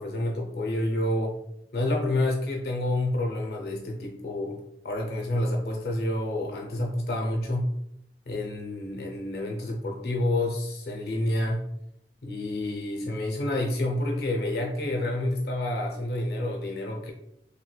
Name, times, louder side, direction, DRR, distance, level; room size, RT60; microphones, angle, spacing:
voice 1, 0.0-1.3 1.7-4.6 4.8-7.7 8.3-11.6 12.2-17.1, left 1 dB, 60° left, 1 dB, 0.5 m, -28 dB
3.2 x 3.0 x 2.2 m, 0.77 s
head